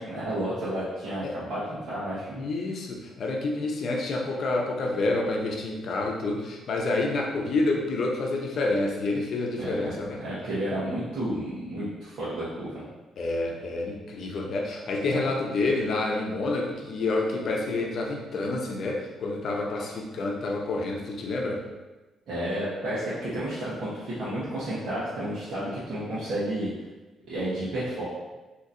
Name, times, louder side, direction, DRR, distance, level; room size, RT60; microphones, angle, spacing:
voice 1, 0.0-2.4 9.6-9.9 10.2-12.8 22.3-26.7 27.3-28.0, right 1 dB, 65° right, -10 dB, 1.0 m, -31 dB
voice 2, 2.4-10.2 13.2-21.6, left 2 dB, 60° left, 0 dB, 0.6 m, -28 dB
4.0 x 2.8 x 2.5 m, 1.1 s
cardioid pair, 90°, 0 cm